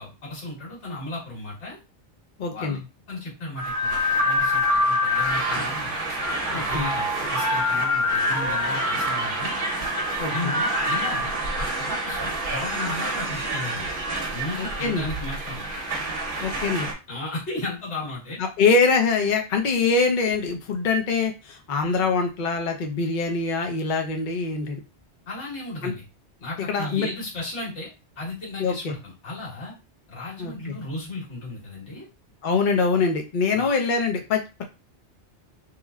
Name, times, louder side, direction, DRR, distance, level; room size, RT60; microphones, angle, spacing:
voice 1, 0.0-1.8 2.5-2.8 3.1-6.2 6.5-9.6 10.3-13.9 14.3-15.6 17.1-18.4 25.3-26.0 26.4-27.9 28.2-29.7 30.1-32.1 33.5-33.7, left 2 dB, 75° left, -5 dB, 1.7 m, -35 dB
voice 2, 2.4-2.8 6.5-6.9 10.2-10.5 14.6-15.0 16.4-16.9 18.4-24.8 25.8-25.9 26.7-27.1 28.6-28.9 30.4-30.7 32.4-34.6, left 4 dB, 50° left, 4 dB, 0.7 m, -24 dB
sound 1, 3.6-16.9, equal, 50° right, 1.0 m, -26 dB
3.2 x 2.1 x 3.5 m, 0.27 s
omnidirectional pair, 1.2 m